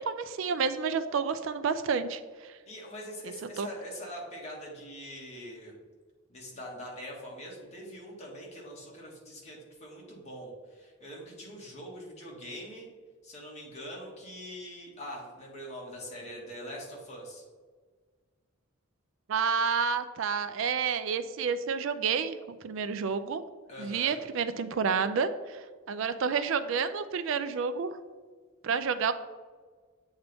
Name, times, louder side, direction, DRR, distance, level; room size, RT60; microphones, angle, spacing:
voice 1, 0.0-2.5 3.6-3.7 19.3-22.4 22.6-23.4 23.8-28.0 28.6-29.1, right 6 dB, 60° right, 11 dB, 0.3 m, -29 dB
voice 2, 2.6-5.7 6.3-12.9 13.2-17.4 23.7-24.2, equal, 30° left, -3 dB, 1.6 m, -43 dB
8.0 x 4.0 x 3.4 m, 1.5 s
head